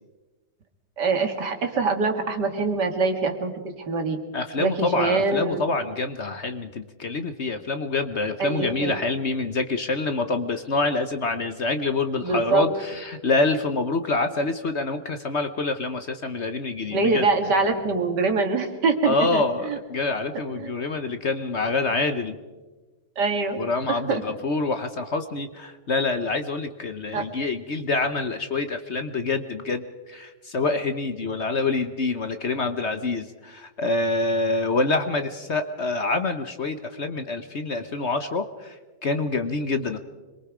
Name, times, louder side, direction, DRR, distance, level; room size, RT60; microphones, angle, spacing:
voice 1, 1.0-4.2 4.6-5.6 8.4-9.0 12.2-12.7 16.9-19.8 20.6-20.7 23.2-23.6 23.9-24.2 27.1-27.2, right 4 dB, 70° right, 5 dB, 2.5 m, -24 dB
voice 2, 4.3-17.3 19.0-22.4 23.5-38.8 39.0-40.0, left 3 dB, 45° left, 8 dB, 1.1 m, -26 dB
26.0 x 22.5 x 5.0 m, 1.2 s
omnidirectional pair, 1.9 m